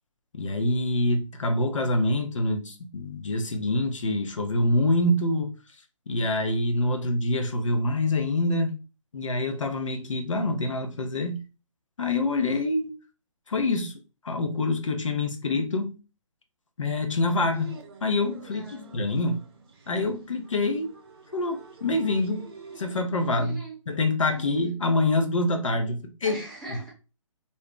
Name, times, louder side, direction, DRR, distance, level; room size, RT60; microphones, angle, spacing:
voice 1, 0.3-5.5 6.1-8.7 9.1-11.4 12.0-12.9 13.5-13.9 14.2-16.0 16.8-17.7 18.0-18.7 18.9-19.4 19.9-20.9 21.3-22.5 22.8-23.6 23.9-26.4, left 2 dB, 70° left, 0.7 m, -26 dB
sound 1, 17.5-23.0, right 4 dB, 45° right, 0.7 m, -48 dB
voice 2, 18.4-18.9 23.2-23.8 24.3-24.4 26.2-26.9, right 2 dB, ahead, 0.8 m, -41 dB
2.6 x 2.2 x 3.6 m
figure-of-eight pair, 145°, 17 cm